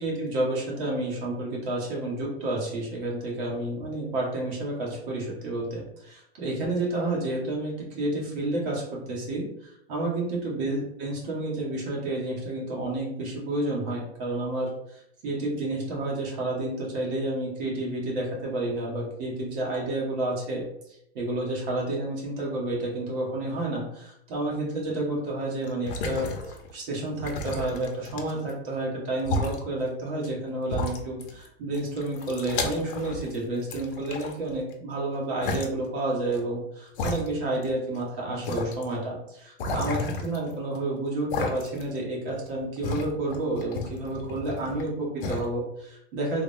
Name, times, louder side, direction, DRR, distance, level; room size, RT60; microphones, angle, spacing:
voice 1, 0.0-20.6 20.9-46.4, right 2 dB, 55° right, -3 dB, 1.5 m, -30 dB
sound 1, 25.6-26.7 27.2-28.5 29.2-29.6 30.2-30.3 30.7-31.5 31.7-33.4 33.7-34.7 35.4-35.7 36.3-36.4 36.9-37.7 38.0-38.1 38.4-38.8 39.6-40.8 41.3-42.0 42.3-44.9 45.2-45.4, left 3 dB, 55° left, 0.7 m, -32 dB
3.5 x 2.2 x 3.5 m, 0.76 s
supercardioid pair, 175°, 32 cm